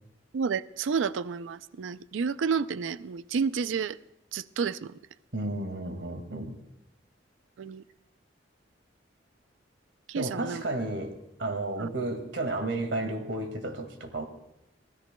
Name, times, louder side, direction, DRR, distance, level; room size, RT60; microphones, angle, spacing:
voice 1, 0.3-4.0 4.3-4.9 7.6-7.8 10.1-10.6 11.8-11.9, right 6 dB, 90° right, 15 dB, 0.4 m, -30 dB
voice 2, 5.3-6.6 10.1-14.2, right 2 dB, 75° right, 7 dB, 2.0 m, -32 dB
24.0 x 16.5 x 2.2 m, 0.88 s
head